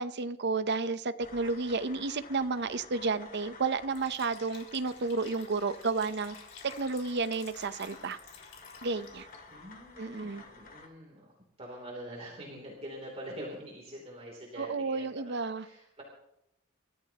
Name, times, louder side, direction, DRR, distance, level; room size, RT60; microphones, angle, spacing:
voice 1, 0.0-6.3 6.8-8.2 8.8-9.3 10.0-10.4 14.6-15.7, right 4 dB, 55° right, 13 dB, 0.7 m, -32 dB
sound 1, 1.2-10.9, left 3 dB, 45° left, 2.2 m, -52 dB
Liquid, 3.9-9.4, left 6 dB, 80° left, 4.3 m, -53 dB
voice 2, 9.5-11.3 11.6-16.0, equal, 30° right, -2 dB, 3.1 m, -45 dB
29.0 x 14.0 x 2.9 m, 0.84 s
head